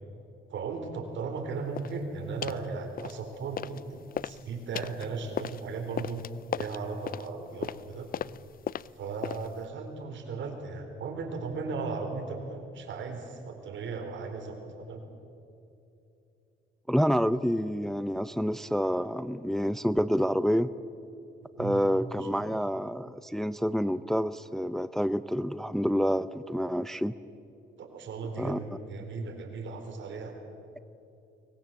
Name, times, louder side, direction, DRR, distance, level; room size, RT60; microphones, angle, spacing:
voice 1, 0.5-6.2 6.6-8.1 8.9-15.0 21.6-21.8 22.3-22.6 27.8-30.4, right 4 dB, 70° right, 4 dB, 4.3 m, -36 dB
sound 1, 1.7-2.0 2.4-2.7 3.0-3.8 4.1-9.6, left 9 dB, 45° left, 0.5 m, -37 dB
voice 2, 16.9-20.7 21.6-27.1 28.4-28.6, equal, ahead, 14 dB, 0.6 m, -28 dB
24.0 x 20.0 x 7.6 m, 2.9 s
cardioid pair, 90°, 20 cm